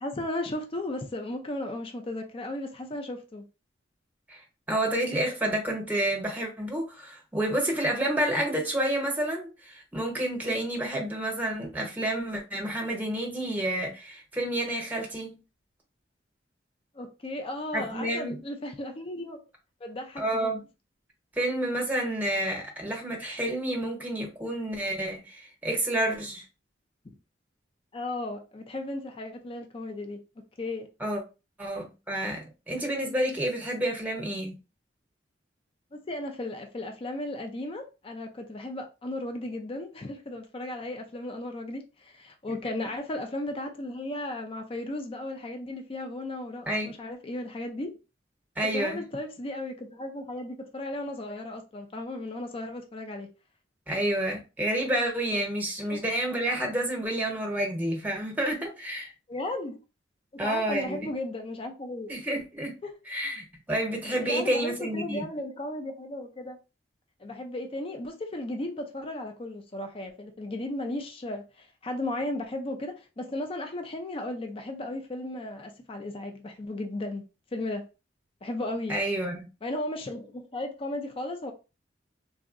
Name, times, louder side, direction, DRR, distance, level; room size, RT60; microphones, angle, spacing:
voice 1, 0.0-3.4 16.9-19.4 19.8-20.5 27.9-30.2 30.6-30.9 35.9-47.9 48.7-53.3 55.9-56.0 59.3-59.8 60.3-62.1 62.8-63.0 64.1-66.6 67.2-77.3 77.5-77.8 78.4-79.0 79.6-81.5, left 1 dB, 30° left, 0.4 m, -35 dB
voice 2, 4.7-15.4 17.7-18.4 20.2-20.6 21.4-26.4 31.0-31.2 31.6-34.5 42.6-42.7 46.7-46.9 48.6-49.0 53.9-59.1 60.4-61.1 62.1-62.7 63.1-65.3 78.9-79.4, right 1 dB, 10° right, 0.8 m, -29 dB
3.5 x 2.0 x 2.4 m
head